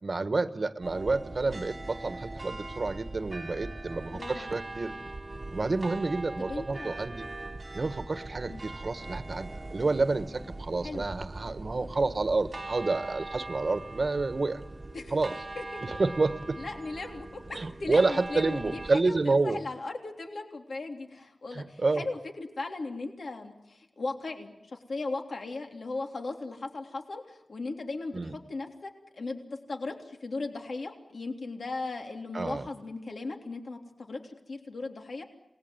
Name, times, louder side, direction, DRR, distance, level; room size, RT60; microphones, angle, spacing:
voice 1, 0.0-4.9 5.5-7.2 7.7-14.6 15.1-15.3 15.8-16.6 17.5-19.6 21.5-22.1 28.1-28.4 32.3-32.7, right 3 dB, 50° right, 11 dB, 1.4 m, -29 dB
sound 1, 0.8-19.0, right 2 dB, 35° right, 1.3 m, -41 dB
voice 2, 4.1-4.6 6.4-7.0 8.4-8.6 10.8-11.1 14.9-15.2 15.5-16.0 16.6-29.4 29.7-35.2, left 3 dB, 70° left, 3 dB, 3.4 m, -37 dB
28.5 x 20.0 x 9.6 m, 0.88 s
wide cardioid pair, 100°, 0 cm